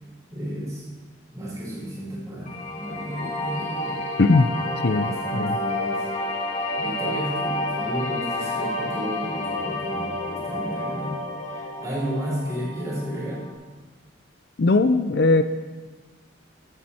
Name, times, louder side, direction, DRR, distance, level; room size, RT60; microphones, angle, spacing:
voice 1, 0.3-0.8 1.3-4.0 4.9-6.1 6.8-13.4, equal, 15° right, -6 dB, 5.1 m, -32 dB
sound 1, 2.5-13.5, left 1 dB, 35° left, 1.8 m, -30 dB
voice 2, 4.2-4.5 4.8-5.1 5.3-5.6 14.6-15.4, left 3 dB, 55° left, 10 dB, 0.5 m, -18 dB
17.0 x 10.5 x 4.3 m, 1.4 s
head